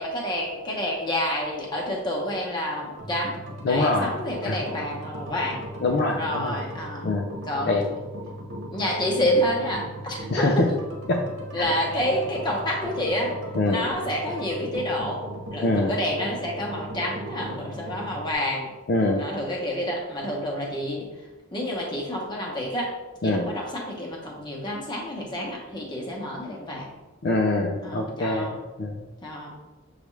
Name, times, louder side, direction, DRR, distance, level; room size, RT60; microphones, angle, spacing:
voice 1, 0.0-3.4 3.7-5.7 6.2-7.1 7.5-7.8 8.7-10.8 11.5-13.4 13.6-15.2 15.5-18.7 19.2-22.9 23.2-26.9 27.8-28.6 29.2-29.5, equal, 20° left, -2 dB, 0.9 m, -28 dB
sound 1, 3.0-18.3, equal, 70° right, 1.0 m, -38 dB
voice 2, 3.6-4.1 4.5-4.6 5.8-6.6 7.0-7.3 7.6-7.9 10.3-10.7 11.1-11.3 13.6-13.8 15.6-15.9 18.9-19.2 23.2-23.5 27.2-29.0, left 2 dB, 55° left, 1 dB, 0.4 m, -24 dB
6.6 x 2.4 x 3.1 m, 1.1 s
head